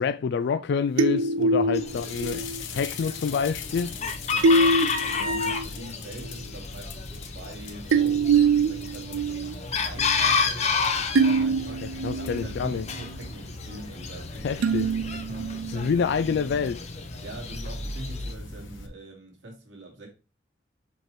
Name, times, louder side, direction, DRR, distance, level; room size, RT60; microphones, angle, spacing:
voice 1, 0.0-2.4 2.7-3.9 12.0-12.8 14.4-14.9 15.7-16.8, left 6 dB, 60° left, 0.3 m, -27 dB
sound 1, 1.0-2.6 4.4-5.7 6.2-6.3 7.9-9.6 10.0-10.1 11.2-12.5 14.6-15.9, right 3 dB, 90° right, 0.4 m, -24 dB
Chicken rooster, 1.7-18.3, left 5 dB, 35° left, 0.7 m, -32 dB
sound 2, 1.9-18.9, left 3 dB, 75° left, 1.0 m, -40 dB
voice 2, 4.0-15.9 16.5-16.6 17.2-20.1, right 2 dB, 65° right, 2.4 m, -44 dB
5.9 x 5.2 x 3.1 m
head